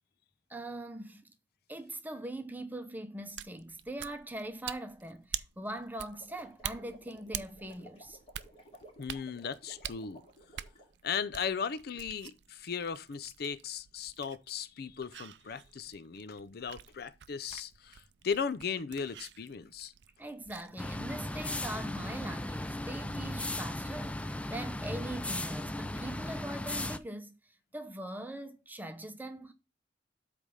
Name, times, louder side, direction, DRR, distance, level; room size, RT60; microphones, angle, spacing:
voice 1, 0.5-1.3 1.7-8.2 20.2-29.5, right 1 dB, 10° right, 0.8 m, -42 dB
sound 1, 3.2-20.8, right 11 dB, 75° right, 0.4 m, -47 dB
sound 2, 6.1-10.9, equal, 35° left, 2.9 m, -56 dB
voice 2, 9.0-10.2 11.0-19.9, left 6 dB, 60° left, 0.5 m, -37 dB
sound 3, 20.8-27.0, left 1 dB, 10° left, 0.4 m, -37 dB
8.1 x 3.4 x 5.4 m
head